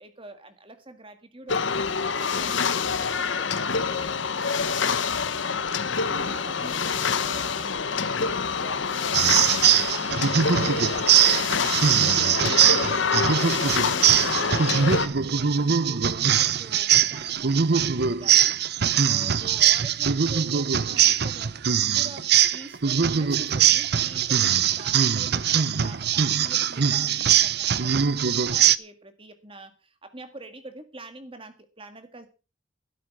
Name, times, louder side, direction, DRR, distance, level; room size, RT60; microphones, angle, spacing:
voice 1, 0.0-1.8 2.1-3.6 6.1-32.3, right 2 dB, 30° right, 8 dB, 1.7 m, -45 dB
sound 1, 1.5-15.1, left 5 dB, 75° left, 1.1 m, -26 dB
sound 2, 9.1-28.8, right 8 dB, 55° right, 0.7 m, -22 dB
12.5 x 12.5 x 4.6 m, 0.33 s
head